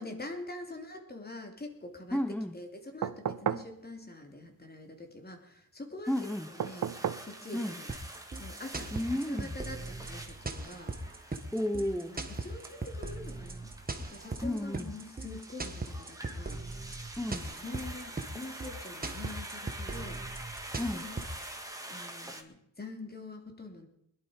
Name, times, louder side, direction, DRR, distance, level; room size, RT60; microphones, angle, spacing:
voice 1, 0.0-2.2 2.5-6.9 7.2-7.9 8.4-8.9 9.3-11.0 11.2-11.3 11.9-13.7 14.0-16.6 17.3-20.2 20.9-21.2 21.9-23.9, left 2 dB, 30° left, 4 dB, 3.0 m, -45 dB
voice 2, 2.1-2.6 6.1-6.5 7.5-7.8 8.9-9.5 11.5-12.2 14.4-15.0 17.2-17.5 20.8-21.1, left 1 dB, 5° left, 9 dB, 0.7 m, -32 dB
sound 1, 3.0-3.7 6.6-7.3 8.9-9.0, right 9 dB, 65° right, 0.7 m, -33 dB
sound 2, 6.0-22.4, right 1 dB, 10° right, 1.9 m, -47 dB
sound 3, 7.9-21.5, right 3 dB, 30° right, 1.6 m, -39 dB
21.5 x 11.5 x 5.1 m, 0.77 s
wide cardioid pair, 90°, 32 cm